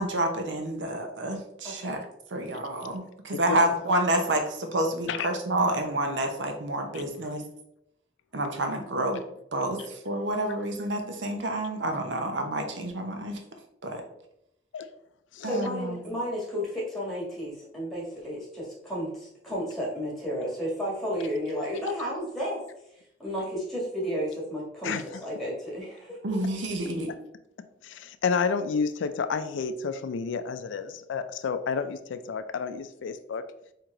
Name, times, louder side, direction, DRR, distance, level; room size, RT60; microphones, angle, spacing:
voice 1, 0.0-2.0 2.3-7.4 8.3-9.2 9.5-13.4 13.8-14.0 15.4-16.0 26.2-27.1, right 1 dB, 80° right, 5 dB, 0.7 m, -29 dB
voice 2, 3.3-3.6 5.1-5.3 6.9-7.0 14.7-14.9 15.3-15.5 24.8-25.2 27.8-33.4, left 5 dB, 90° left, 11 dB, 0.4 m, -30 dB
voice 3, 15.4-22.6 23.2-26.7, equal, ahead, -5 dB, 1.8 m, -32 dB
4.5 x 2.9 x 3.7 m, 0.78 s
head